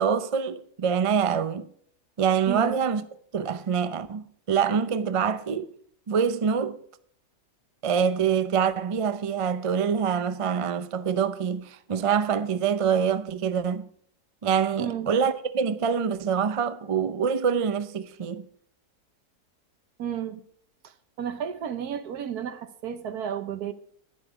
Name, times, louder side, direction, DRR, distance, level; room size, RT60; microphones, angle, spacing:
voice 1, 0.0-1.7 2.2-3.0 3.3-5.7 6.1-6.8 7.8-13.9 14.4-18.4, right 7 dB, 60° right, 0.3 m, -25 dB
voice 2, 2.5-2.8 14.8-15.1 20.0-20.4 20.8-20.9 21.2-23.7, right 9 dB, 80° right, 1.5 m, -32 dB
11.5 x 10.5 x 5.0 m
omnidirectional pair, 1.6 m